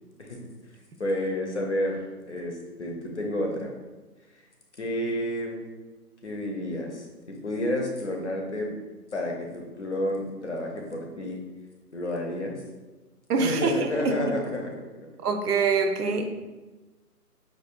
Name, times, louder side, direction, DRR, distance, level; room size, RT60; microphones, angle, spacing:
voice 1, 1.0-3.7 4.8-5.7 6.2-8.7 9.1-11.4 11.9-12.6 13.4-14.7, left 1 dB, 50° left, 1 dB, 0.6 m, -30 dB
voice 2, 13.3-13.7 14.0-14.1 15.2-16.3, right 4 dB, 75° right, 6 dB, 0.6 m, -24 dB
4.5 x 2.4 x 2.4 m, 1.2 s
hypercardioid pair, 165°, 47 cm